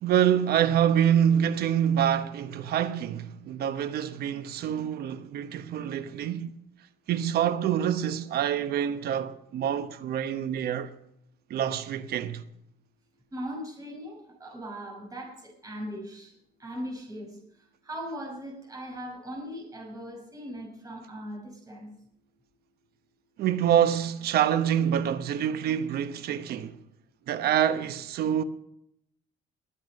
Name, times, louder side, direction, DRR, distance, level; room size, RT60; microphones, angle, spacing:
voice 1, 0.0-6.5 7.1-10.9 11.5-12.4 23.4-26.8 27.3-28.4, right 9 dB, 70° right, 1.0 m, -26 dB
voice 2, 13.3-16.3 16.6-17.4 17.8-21.9, equal, 20° right, 5.8 m, -39 dB
21.5 x 8.4 x 5.3 m
cardioid pair, 110°, 17 cm